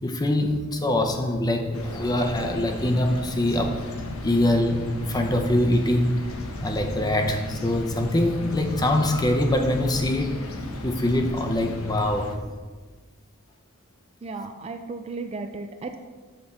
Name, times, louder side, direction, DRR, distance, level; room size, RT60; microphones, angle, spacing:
voice 1, 0.0-3.8 4.2-6.2 6.6-10.5 10.8-12.3, left 1 dB, 20° left, 4 dB, 0.6 m, -24 dB
sound 1, 0.5-11.0, equal, 85° right, 0.9 m, -40 dB
sound 2, 1.7-12.4, left 1 dB, 85° left, 0.9 m, -36 dB
voice 2, 14.2-16.0, right 3 dB, 30° right, 6 dB, 0.3 m, -34 dB
6.7 x 4.2 x 5.4 m, 1.4 s
head